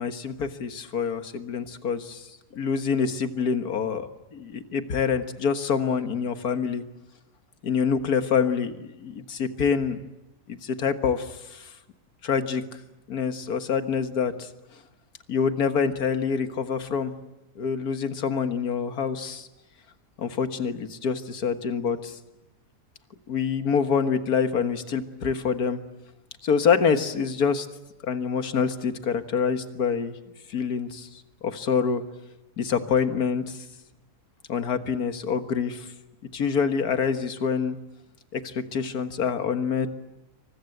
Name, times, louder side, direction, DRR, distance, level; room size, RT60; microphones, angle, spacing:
voice 1, 0.0-2.3 2.5-6.8 7.6-10.0 10.5-11.7 12.2-12.6 13.1-14.5 15.3-17.1 17.6-19.5 20.2-22.2 23.3-25.8 26.4-27.7 28.0-30.1 30.5-31.1 31.4-32.0 32.6-33.6 34.5-35.9 36.3-37.8 38.3-39.9, left 6 dB, 65° left, 9 dB, 2.0 m, -26 dB
28.0 x 24.5 x 8.0 m, 1.0 s
omnidirectional pair, 1.7 m